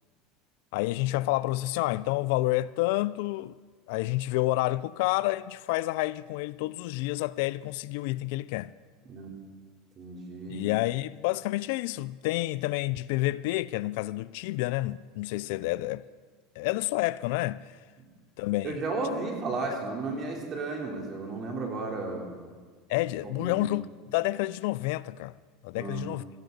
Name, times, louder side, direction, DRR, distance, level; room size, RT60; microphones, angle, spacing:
voice 1, 0.7-3.6 3.9-8.7 10.5-16.0 16.6-17.6 18.4-18.8 22.9-23.8 24.1-25.4 25.6-26.2, left 18 dB, 70° left, 0.3 m, -29 dB
voice 2, 10.0-10.7 18.6-22.3 23.3-23.6 25.8-26.1, right 3 dB, 40° right, 3.4 m, -33 dB
17.0 x 13.5 x 4.0 m
supercardioid pair, 110°, 0 cm